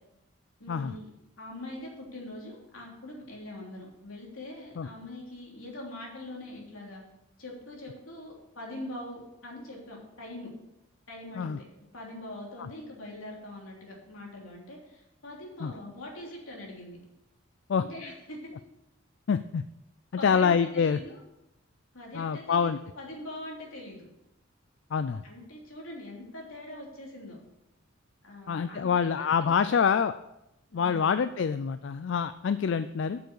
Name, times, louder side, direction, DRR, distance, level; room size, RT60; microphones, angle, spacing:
voice 1, 0.6-1.1 1.4-7.0 7.4-10.5 11.1-11.6 11.9-17.0 17.8-18.5 20.2-21.2 21.9-24.1 25.2-27.4 28.2-29.8 30.7-31.2, left 1 dB, 80° left, -2 dB, 3.3 m, -43 dB
voice 2, 19.3-19.6 20.1-21.0 22.1-22.8 24.9-25.2 28.5-30.1 30.7-33.2, left 6 dB, 60° left, 12 dB, 0.3 m, -26 dB
8.6 x 6.9 x 6.5 m, 0.88 s
head